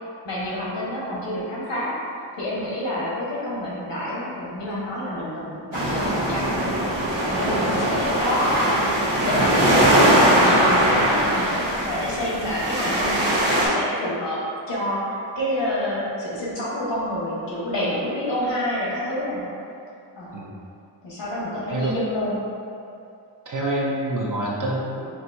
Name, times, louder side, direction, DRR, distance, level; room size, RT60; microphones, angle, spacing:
voice 1, 0.2-1.9 2.3-6.9 7.2-8.9 9.2-14.4 14.7-15.0 15.3-19.4 20.2-20.3 21.0-22.4, left 1 dB, 65° left, -7 dB, 1.3 m, -28 dB
sound 1, 5.7-13.7, right 1 dB, 65° right, 1.0 m, -21 dB
voice 2, 23.5-25.1, right 1 dB, 45° right, -4 dB, 0.6 m, -27 dB
6.0 x 2.6 x 2.6 m, 2.6 s
wide cardioid pair, 170°, 45 cm